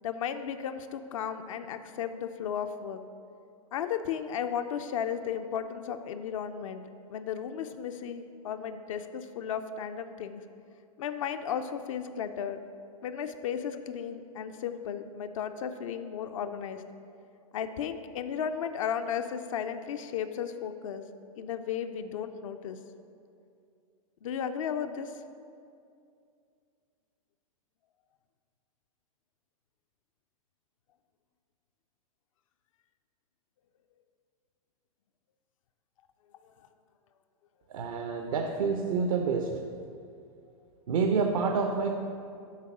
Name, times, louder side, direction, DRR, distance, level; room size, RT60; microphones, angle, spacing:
voice 1, 0.0-3.0 3.7-10.4 11.0-12.6 13.0-16.8 17.5-21.0 21.4-22.8 24.2-25.1, left 8 dB, 65° left, 8 dB, 0.4 m, -34 dB
voice 2, 37.7-39.6 40.9-41.9, right 5 dB, 70° right, 4 dB, 0.6 m, -28 dB
7.4 x 3.9 x 6.0 m, 2.4 s
hypercardioid pair, 105°, 18 cm